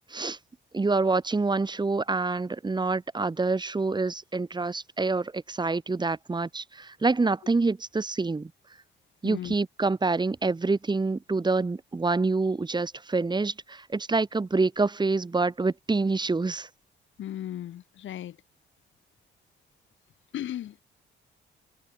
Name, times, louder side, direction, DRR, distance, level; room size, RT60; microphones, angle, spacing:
voice 1, 0.7-8.5 9.2-16.7, right 3 dB, 20° right, 2.1 m, -27 dB
voice 2, 9.2-9.5 17.2-18.4 20.3-20.8, left 11 dB, 75° left, 4.1 m, -36 dB
cardioid pair, 90°, 20 cm